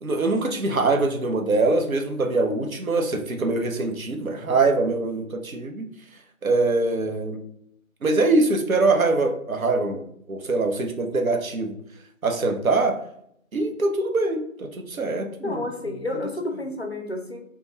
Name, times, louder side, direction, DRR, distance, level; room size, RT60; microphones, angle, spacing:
voice 1, 0.0-5.9 6.4-7.4 8.0-10.0 10.3-11.8 12.2-13.0 13.5-15.6, right 3 dB, 75° right, 4 dB, 0.7 m, -23 dB
voice 2, 15.4-17.4, left 2 dB, 50° left, 3 dB, 0.5 m, -30 dB
2.3 x 2.1 x 3.0 m, 0.70 s
figure-of-eight pair, 165°, 42 cm